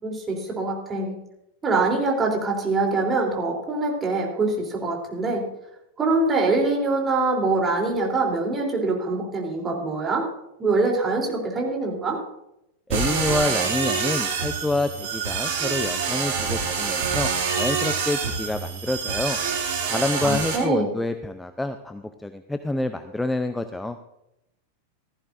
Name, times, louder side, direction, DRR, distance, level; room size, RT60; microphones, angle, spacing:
voice 1, 0.0-1.1 1.6-5.5 6.0-10.3 10.6-12.2 20.2-20.9, right 3 dB, 20° right, 0 dB, 3.5 m, -24 dB
voice 2, 12.9-19.4 19.9-24.0, left 2 dB, 5° left, 9 dB, 0.6 m, -27 dB
sound 1, 12.9-20.6, right 5 dB, 55° right, 2.5 m, -26 dB
16.0 x 14.5 x 2.6 m, 0.86 s
figure-of-eight pair, 90°, 0 cm